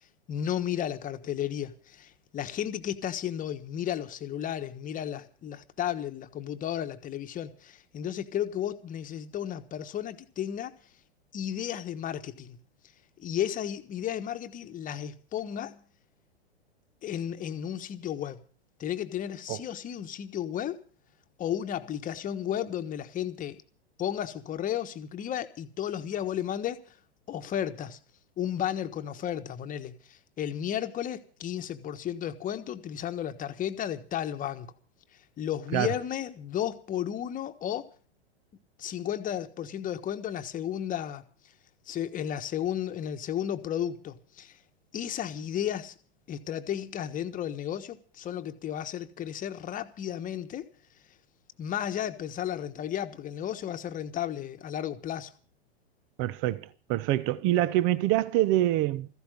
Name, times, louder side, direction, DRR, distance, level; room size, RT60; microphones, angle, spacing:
voice 1, 0.3-10.7 11.3-12.6 13.2-15.8 17.0-18.4 18.8-20.8 21.4-23.6 24.0-26.9 27.3-28.0 28.4-34.7 35.4-37.9 38.8-41.3 41.9-44.6 44.9-45.9 46.3-50.7 51.6-55.3, left 10 dB, 25° left, 1.3 m, -33 dB
voice 2, 56.2-59.1, right 14 dB, 35° right, 0.9 m, -26 dB
16.5 x 14.5 x 5.2 m
hypercardioid pair, 115°, 33 cm